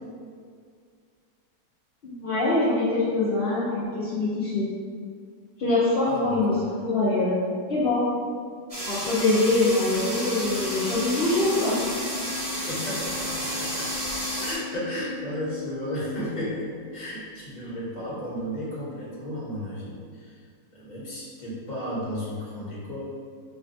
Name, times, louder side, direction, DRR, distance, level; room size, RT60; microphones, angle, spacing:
voice 1, 2.0-4.7 5.6-7.4 7.7-8.0 8.9-11.8, left 2 dB, 60° left, -10 dB, 0.6 m, -24 dB
voice 2, 6.0-6.6 12.7-13.9 14.4-20.4 20.7-23.0, equal, 35° left, -7 dB, 0.8 m, -34 dB
sound 1, 8.7-14.5, equal, 25° right, 0.9 m, -31 dB
Organ, 10.3-16.8, left 5 dB, 70° right, 1.5 m, -39 dB
5.7 x 2.2 x 2.6 m, 2.1 s
omnidirectional pair, 1.8 m